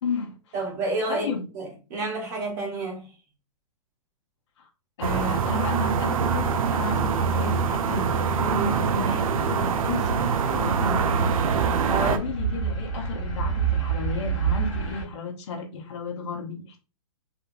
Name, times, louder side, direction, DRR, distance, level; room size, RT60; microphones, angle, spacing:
voice 1, 0.0-0.3 1.1-1.5 4.6-4.7 5.0-11.4 12.0-16.8, left 3 dB, 55° left, 0.9 m, -33 dB
voice 2, 0.5-1.3 1.5-3.1 7.3-7.5 11.9-12.2, right 2 dB, 30° right, 1.2 m, -30 dB
sound 1, 5.0-12.2, right 6 dB, 90° right, 0.6 m, -24 dB
sound 2, 10.9-15.0, right 7 dB, 15° left, 0.8 m, -28 dB
3.5 x 2.7 x 2.5 m
hypercardioid pair, 170°, 17 cm